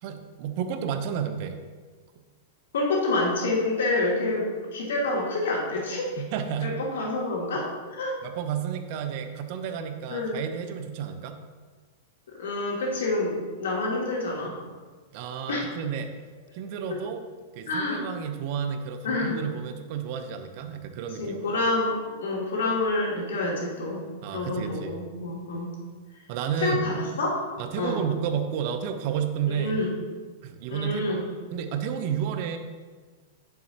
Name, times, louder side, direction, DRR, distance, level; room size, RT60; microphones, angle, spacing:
voice 1, 0.0-1.6 6.2-6.7 8.2-11.4 15.1-16.1 16.5-17.2 17.5-21.6 24.2-25.0 26.3-26.9 27.6-29.8 30.4-31.0 31.5-32.6, right 8 dB, 50° right, 8 dB, 0.9 m, -31 dB
voice 2, 2.7-6.2 6.6-8.1 10.1-10.4 12.4-14.5 15.5-15.7 16.9-17.0 17.7-18.1 19.0-19.4 21.2-24.0 24.3-25.7 26.6-27.4 27.8-28.0 29.5-29.9 30.7-31.2, left 2 dB, 70° left, -3 dB, 2.7 m, -28 dB
9.8 x 7.5 x 3.0 m, 1.4 s
figure-of-eight pair, 100°, 0 cm